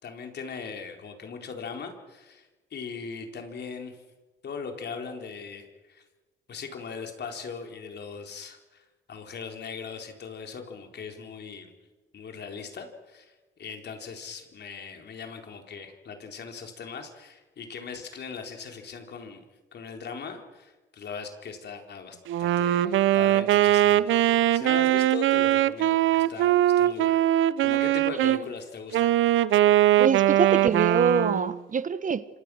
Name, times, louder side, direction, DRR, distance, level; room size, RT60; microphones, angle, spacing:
voice 1, 0.0-4.0 4.4-6.0 6.5-8.8 9.1-11.7 12.1-13.3 13.6-19.4 19.7-27.2 27.6-29.2, left 5 dB, 60° left, 4.2 m, -39 dB
Wind instrument woodwind instrument, 22.3-28.4 28.9-31.6, right 13 dB, 80° right, 0.8 m, -21 dB
voice 2, 30.0-32.3, right 6 dB, 40° right, 1.2 m, -25 dB
26.5 x 26.0 x 6.5 m
cardioid pair, 90°, 20 cm